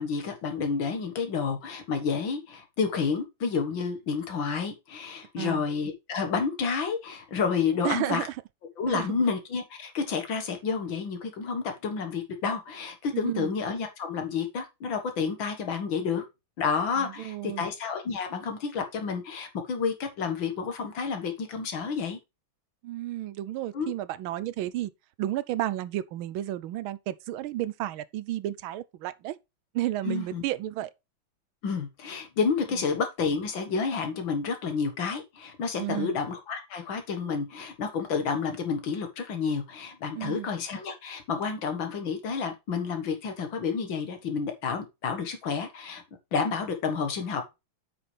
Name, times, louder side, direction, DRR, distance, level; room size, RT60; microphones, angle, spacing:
voice 1, 0.0-8.3 8.8-16.2 16.6-22.2 23.7-23.9 30.0-30.4 31.6-46.0 46.3-47.4, left 5 dB, 70° left, 2.3 m, -30 dB
voice 2, 7.8-8.3 8.9-9.2 13.2-13.5 17.0-17.7 22.8-24.9 25.2-29.4 29.7-30.9 35.8-36.2 40.2-40.5, right 14 dB, 85° right, 1.4 m, -32 dB
8.5 x 6.1 x 3.3 m
omnidirectional pair, 2.2 m